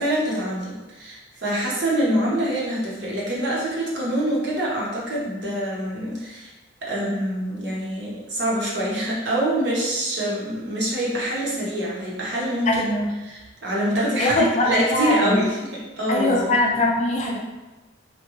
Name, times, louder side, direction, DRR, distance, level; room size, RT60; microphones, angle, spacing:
voice 1, 0.0-6.5 6.8-12.8 13.2-16.5, right 1 dB, 55° right, -5 dB, 0.8 m, -25 dB
voice 2, 12.7-13.1 14.2-15.4 16.1-17.4, left 2 dB, 35° left, -1 dB, 0.4 m, -22 dB
3.6 x 2.2 x 2.9 m, 1.1 s
head